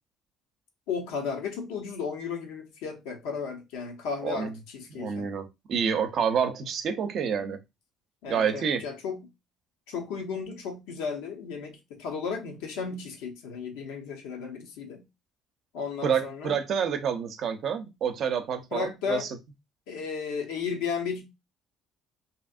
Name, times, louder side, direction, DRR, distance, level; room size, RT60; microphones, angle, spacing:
voice 1, 0.9-5.3 8.2-9.3 9.9-15.0 15.7-16.6 18.7-19.3 19.9-21.3, left 5 dB, 80° left, 0.7 m, -34 dB
voice 2, 4.9-7.6 8.3-8.8 16.0-19.3, right 7 dB, 60° right, 0.6 m, -28 dB
2.8 x 2.6 x 2.4 m
hypercardioid pair, 60°, 0 cm